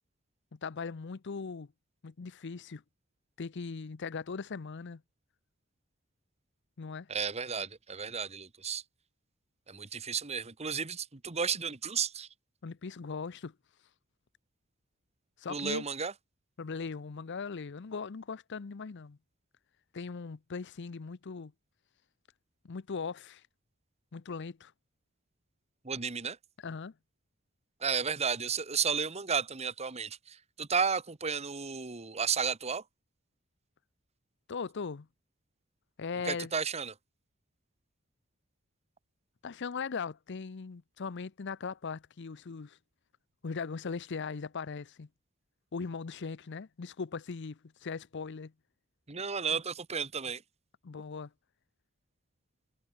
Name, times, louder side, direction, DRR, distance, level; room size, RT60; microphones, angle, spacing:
voice 1, 0.5-1.7 2.0-2.8 3.4-5.0 6.8-7.1 12.6-13.5 15.4-15.8 16.6-19.2 19.9-21.5 22.6-23.4 24.1-24.7 26.6-26.9 34.5-35.1 36.0-36.5 39.4-42.8 43.4-45.1 45.7-48.5 50.8-51.3, left 5 dB, 60° left, 0.6 m, -39 dB
voice 2, 7.1-8.8 9.7-12.3 15.5-16.1 25.8-26.4 27.8-32.8 36.2-36.9 49.1-50.4, right 6 dB, 30° right, 1.2 m, -33 dB
head